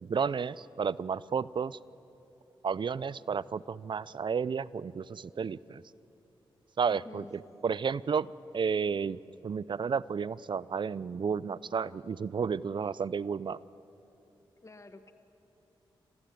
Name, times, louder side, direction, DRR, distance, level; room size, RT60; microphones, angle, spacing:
voice 1, 0.0-1.8 2.6-5.8 6.8-7.3 7.6-13.6, right 6 dB, 55° right, 20 dB, 0.5 m, -32 dB
voice 2, 6.9-7.3 14.6-15.1, left 2 dB, 30° left, 9 dB, 1.5 m, -48 dB
28.0 x 15.5 x 9.4 m, 3.0 s
cardioid pair, 60°, 10 cm